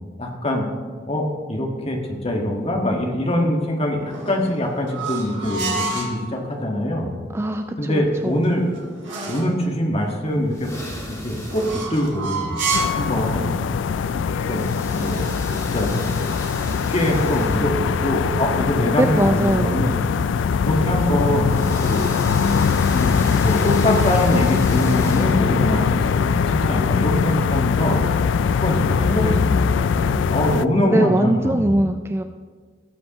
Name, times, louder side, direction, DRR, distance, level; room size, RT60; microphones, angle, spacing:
voice 1, 0.2-0.7 1.1-7.1 7.8-8.6 9.3-12.6 12.9-13.6 14.4-15.3 15.7-15.9 16.7-19.9 20.6-22.1 22.9-28.0 28.5-31.8, left 1 dB, 35° left, 0 dB, 1.6 m, -23 dB
sound 1, 4.0-6.2 8.2-9.6 11.5-13.1, right 2 dB, 75° right, 2.6 m, -28 dB
voice 2, 7.3-8.4 19.0-19.8 30.9-32.2, right 1 dB, 15° right, 7 dB, 0.3 m, -21 dB
sound 2, 10.3-27.0, left 1 dB, 20° left, 2.0 m, -37 dB
sound 3, 12.7-30.7, left 6 dB, 70° left, 0.3 m, -21 dB
17.5 x 7.6 x 3.0 m, 1.5 s
head